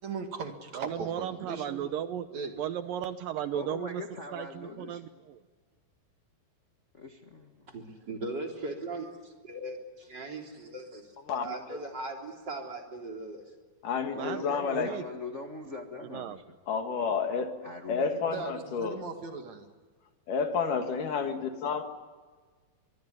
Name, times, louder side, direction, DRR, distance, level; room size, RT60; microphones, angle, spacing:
voice 1, 0.0-1.9 2.3-2.5 18.3-19.7, right 4 dB, 50° right, 5 dB, 3.1 m, -38 dB
voice 2, 0.7-4.0 4.3-5.4 14.1-15.0 16.0-16.4, right 10 dB, 75° right, 11 dB, 2.4 m, -35 dB
voice 3, 3.5-5.1 6.9-7.6 14.1-16.6 17.6-18.3, left 2 dB, 90° left, 3 dB, 0.6 m, -42 dB
voice 4, 7.7-11.0 11.4-13.4, right 2 dB, 30° right, 2 dB, 3.8 m, -39 dB
voice 5, 13.8-14.9 16.7-17.5 17.9-19.0 20.3-21.8, left 5 dB, 60° left, 6 dB, 3.3 m, -30 dB
24.0 x 23.5 x 9.6 m, 1.4 s
omnidirectional pair, 4.4 m